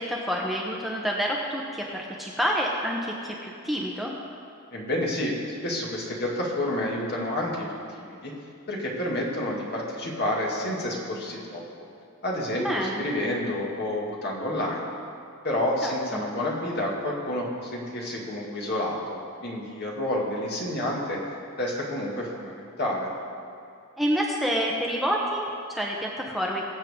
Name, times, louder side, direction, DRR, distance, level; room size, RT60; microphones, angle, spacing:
voice 1, 0.0-4.1 12.6-13.0 15.8-16.2 24.0-26.7, equal, ahead, -2 dB, 0.8 m, -28 dB
voice 2, 4.7-8.3 8.7-11.6 12.2-14.8 15.4-21.2 21.6-23.1, left 1 dB, 50° left, -3 dB, 2.1 m, -29 dB
22.0 x 7.6 x 3.7 m, 2.5 s
head